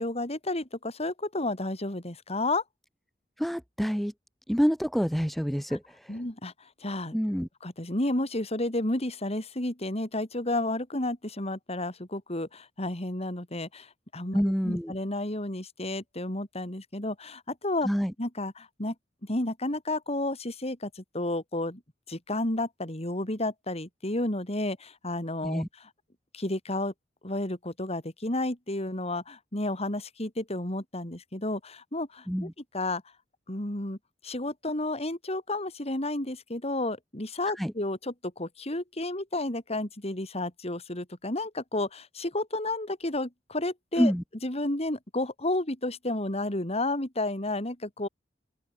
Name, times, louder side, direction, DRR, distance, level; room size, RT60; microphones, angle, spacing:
voice 1, 0.0-2.6 6.1-6.5 6.8-7.2 7.6-17.9 18.2-18.9 19.2-21.8 22.1-25.6 26.3-26.9 27.2-32.5 32.7-33.0 33.5-34.0 34.2-44.1 44.4-48.1, left 2 dB, 35° left, 3.9 m, -31 dB
voice 2, 3.4-4.1 4.5-6.2 7.1-7.5 14.3-14.9 17.8-18.1 25.4-25.7 32.3-32.5 37.6-37.7 44.0-44.2, equal, ahead, 1.0 m, -27 dB
open air
head